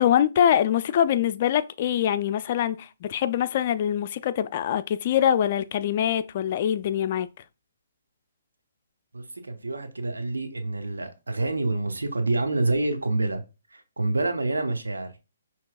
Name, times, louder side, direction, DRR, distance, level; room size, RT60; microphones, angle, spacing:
voice 1, 0.0-7.3, left 10 dB, 45° left, 0.3 m, -24 dB
voice 2, 9.1-13.4 13.7-15.1, right 2 dB, 90° right, 0.8 m, -27 dB
6.0 x 2.9 x 2.3 m
hypercardioid pair, 140°, 0 cm